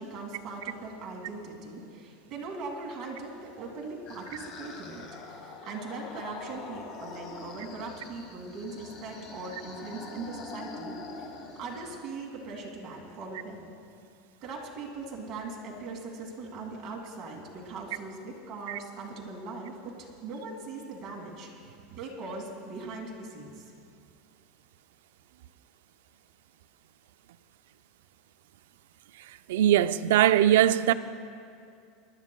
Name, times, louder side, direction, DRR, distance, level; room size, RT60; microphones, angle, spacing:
voice 1, 0.0-5.0 5.6-13.7 14.4-23.7, right 3 dB, 30° right, 2.0 m, -40 dB
sound 1, 3.5-12.0, left 3 dB, 40° left, 1.3 m, -44 dB
voice 2, 29.5-30.9, right 12 dB, 85° right, 0.4 m, -21 dB
25.5 x 12.5 x 2.2 m
supercardioid pair, 170°, 0 cm